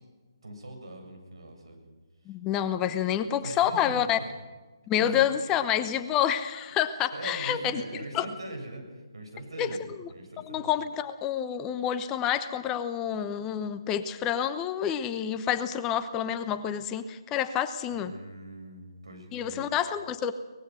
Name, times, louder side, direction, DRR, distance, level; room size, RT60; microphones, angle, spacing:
voice 1, 0.4-1.8 2.8-3.9 4.9-5.6 7.1-8.8 9.1-10.7 17.9-19.7, right 1 dB, 80° right, 3 dB, 7.6 m, -42 dB
voice 2, 2.3-4.2 4.9-7.8 8.1-8.2 9.6-9.7 10.4-18.1 19.3-20.3, left 9 dB, 15° left, 10 dB, 0.9 m, -28 dB
23.5 x 19.5 x 6.4 m, 1.3 s
figure-of-eight pair, 150°, 3 cm